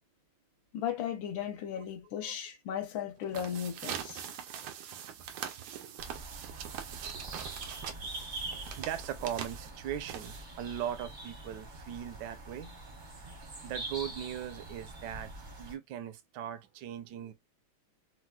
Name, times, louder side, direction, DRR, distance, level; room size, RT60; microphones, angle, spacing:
voice 1, 0.7-4.2, left 9 dB, 75° left, 1.4 m, -36 dB
sound 1, 3.2-10.7, right 9 dB, 90° right, 1.5 m, -42 dB
voice 2, 5.6-6.0 7.1-7.7 8.8-12.7 13.6-15.3 15.6-17.3, right 10 dB, 70° right, 1.0 m, -39 dB
sound 2, 6.0-15.7, right 2 dB, 45° right, 0.6 m, -44 dB
4.1 x 2.1 x 2.2 m
omnidirectional pair, 2.2 m